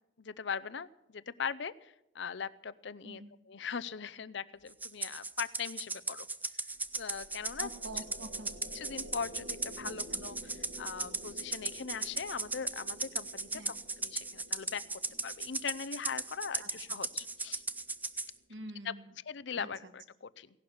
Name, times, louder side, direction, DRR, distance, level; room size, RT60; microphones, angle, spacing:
voice 1, 0.2-6.3 6.9-7.7 8.7-13.7 14.0-17.6 18.8-18.9 19.3-20.5, left 6 dB, 60° left, 16 dB, 0.6 m, -40 dB
Rattle (instrument), 4.8-18.3, right 3 dB, 10° right, 0.5 m, -37 dB
sound 1, 6.8-18.2, equal, 80° right, 1.8 m, -53 dB
voice 2, 7.6-8.5 9.8-10.2 13.5-13.7 16.6-17.0 18.5-19.2 19.5-19.9, right 1 dB, 65° right, 10 dB, 1.4 m, -47 dB
17.0 x 11.5 x 7.1 m, 0.86 s
head